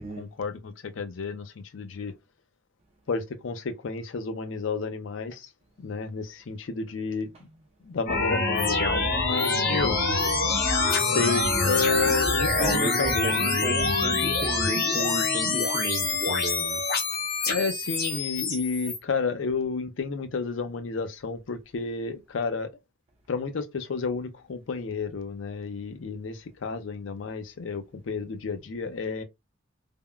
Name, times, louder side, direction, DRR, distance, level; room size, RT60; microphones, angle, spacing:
voice 1, 0.0-2.1 3.1-5.5 5.8-7.3 7.8-10.0 11.0-13.3 17.5-22.7 23.3-29.2, left 4 dB, 70° left, 0.5 m, -31 dB
sound 1, 8.1-19.0, left 3 dB, 50° left, 0.9 m, -25 dB
voice 2, 12.5-16.8, right 2 dB, 30° right, 0.4 m, -33 dB
3.4 x 2.0 x 2.2 m
head